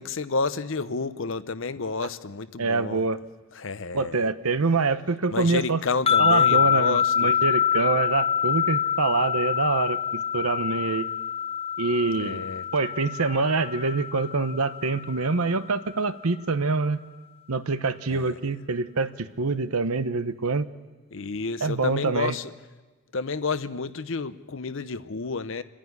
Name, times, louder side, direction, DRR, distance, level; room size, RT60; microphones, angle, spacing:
voice 1, 0.0-3.0 3.5-4.2 5.3-7.3 12.2-12.6 18.1-18.5 21.1-22.5 23.1-25.6, left 4 dB, 60° left, 13 dB, 0.7 m, -30 dB
voice 2, 2.6-3.2 3.9-5.8 6.2-11.1 11.8-12.4 12.7-17.0 17.5-20.7 21.6-22.3, right 4 dB, 85° right, 12 dB, 0.9 m, -25 dB
sound 1, 6.1-15.3, left 8 dB, 25° left, 0.6 m, -25 dB
28.0 x 10.0 x 9.5 m, 1.3 s
head